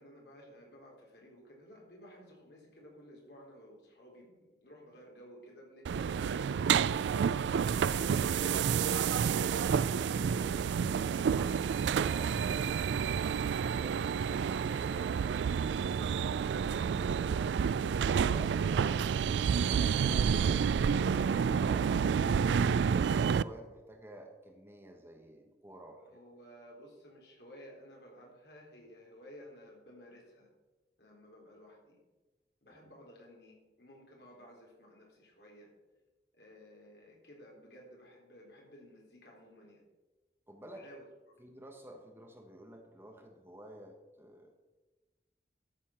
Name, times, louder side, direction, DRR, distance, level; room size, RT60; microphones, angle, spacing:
voice 1, 0.0-7.0 7.5-10.5 11.1-11.5 26.0-30.5 31.0-32.0 32.6-35.7 36.3-39.8 40.7-41.4, equal, 70° left, -1 dB, 3.8 m, -54 dB
sound 1, 5.8-23.4, right 7 dB, 85° right, 0.3 m, -29 dB
voice 2, 11.8-14.0 18.3-19.2 19.5-22.6 22.9-26.2 32.6-32.8 40.5-40.8 41.4-44.5, right 1 dB, 15° right, 2 dB, 1.3 m, -51 dB
13.0 x 7.5 x 5.8 m, 1.2 s
head